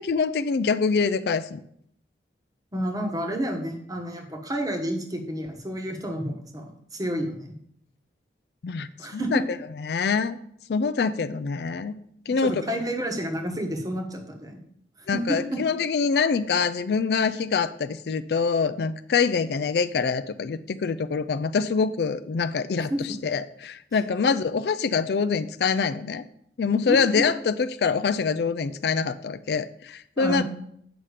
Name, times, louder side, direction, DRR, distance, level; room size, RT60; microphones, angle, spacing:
voice 1, 0.0-1.6 8.6-8.9 9.1-9.4 9.8-10.4 10.7-11.9 12.3-12.8 15.1-22.9 23.2-26.2 26.6-30.4, left 5 dB, 60° left, 12 dB, 0.4 m, -25 dB
voice 2, 2.7-7.5 9.0-9.4 12.3-14.6 15.0-15.6 22.9-23.2 26.9-27.2 30.2-30.4, equal, 20° right, 3 dB, 1.1 m, -30 dB
8.1 x 5.7 x 4.9 m, 0.70 s
head